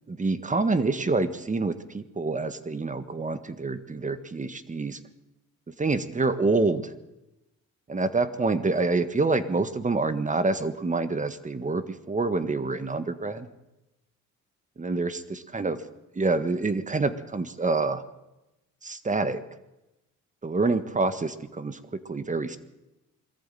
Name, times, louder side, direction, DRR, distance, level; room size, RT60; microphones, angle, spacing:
voice 1, 0.1-5.0 5.8-6.9 7.9-13.5 14.8-15.8 16.1-18.0 18.8-19.4 20.4-22.6, right 3 dB, 25° right, 12 dB, 1.6 m, -27 dB
22.0 x 14.0 x 9.3 m, 0.96 s
cardioid pair, 90°, 30 cm